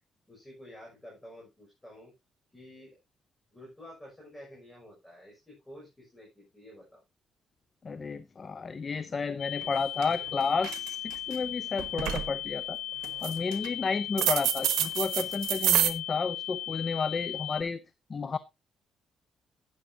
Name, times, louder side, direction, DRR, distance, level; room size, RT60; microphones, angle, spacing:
voice 1, 0.2-2.1 2.5-3.0 3.5-7.0, left 1 dB, 10° left, -2 dB, 6.4 m, -50 dB
voice 2, 7.8-11.0 11.3-12.8 13.2-17.8 18.1-18.4, left 4 dB, 40° left, 14 dB, 0.7 m, -31 dB
sound 1, 9.4-17.6, left 13 dB, 85° left, 1.1 m, -37 dB
sound 2, 9.6-9.7 10.0-10.3 10.6-11.4 11.8-12.3 13.0-13.7 14.2-15.9, right 13 dB, 90° right, 1.1 m, -27 dB
12.0 x 9.9 x 2.8 m, 0.23 s
cardioid pair, 90°, 0 cm